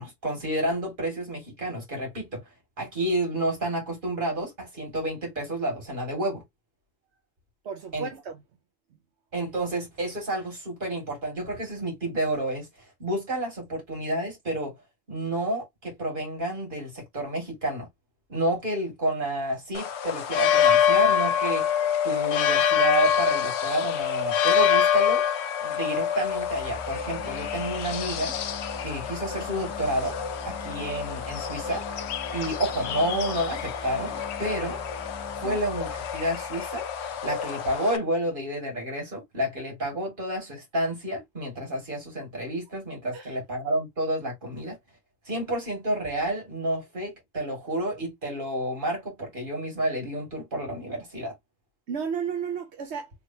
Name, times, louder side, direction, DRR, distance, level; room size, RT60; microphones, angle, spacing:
voice 1, 0.0-2.4 2.8-6.4 7.9-8.1 9.3-12.7 13.0-14.8 15.1-17.9 18.3-21.7 22.0-25.2 25.6-28.3 28.8-30.2 30.4-31.8 32.3-34.8 35.4-36.8 37.2-44.8 45.3-51.3, right 1 dB, 50° right, 2.5 m, -30 dB
voice 2, 7.6-8.4 35.4-35.6 43.1-43.4 51.9-53.1, right 6 dB, 85° right, 1.0 m, -33 dB
sound 1, 19.7-38.0, left 8 dB, 80° left, 0.9 m, -26 dB
sound 2, 26.1-37.9, left 2 dB, 25° left, 0.5 m, -42 dB
3.5 x 3.2 x 2.7 m
omnidirectional pair, 1.1 m